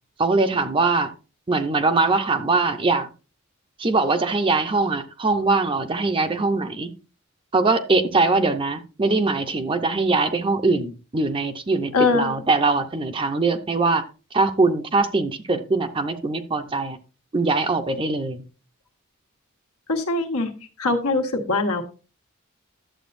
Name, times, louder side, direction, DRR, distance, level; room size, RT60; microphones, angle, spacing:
voice 1, 0.2-1.1 1.5-3.1 3.8-6.9 7.5-14.0 14.3-17.0 17.3-18.4, right 3 dB, 25° right, 0.7 m, -22 dB
voice 2, 11.9-12.3 19.9-20.5 20.8-21.8, left 3 dB, 90° left, 1.4 m, -22 dB
11.5 x 7.7 x 2.6 m
head